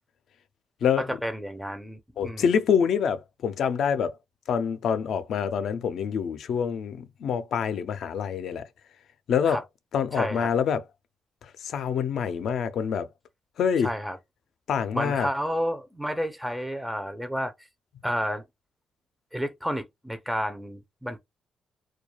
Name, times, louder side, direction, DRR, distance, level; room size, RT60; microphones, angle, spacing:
voice 1, 1.0-2.4 9.5-9.6 10.1-10.5 13.8-14.2 14.9-17.5 18.0-18.4 19.3-21.2, equal, ahead, 0.4 m, -31 dB
voice 2, 2.2-4.1 4.5-8.6 9.3-9.6 9.9-10.8 11.6-13.1 13.6-13.9 14.7-15.3, left 7 dB, 70° left, 0.4 m, -26 dB
2.2 x 2.2 x 2.9 m
supercardioid pair, 65°, 0 cm